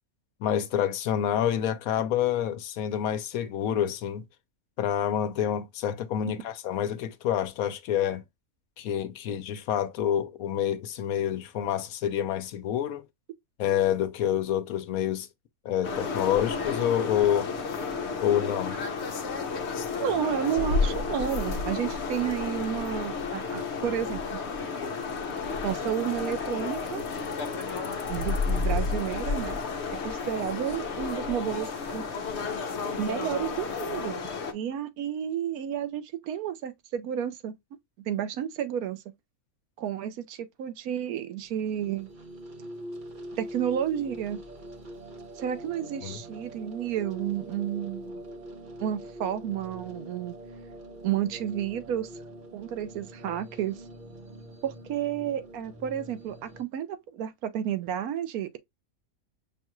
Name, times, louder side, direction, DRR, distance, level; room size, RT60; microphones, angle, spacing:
voice 1, 0.4-4.2 4.8-8.2 8.8-13.0 13.6-15.3 15.6-17.5 18.2-18.8 46.0-46.2, left 10 dB, 80° left, 1.1 m, -27 dB
sound 1, 15.8-34.5, left 4 dB, 60° left, 0.9 m, -31 dB
voice 2, 20.0-24.4 25.6-27.0 28.1-29.6 30.0-32.1 33.0-34.2 34.5-37.5 38.0-39.0 39.8-42.1 43.4-44.4 45.4-48.2 48.8-50.3 51.0-52.1 52.5-53.8 54.6-58.6, right 10 dB, 85° right, 1.1 m, -31 dB
sound 2, 41.4-56.6, right 1 dB, 45° right, 0.7 m, -43 dB
5.4 x 2.3 x 2.9 m
omnidirectional pair, 1.5 m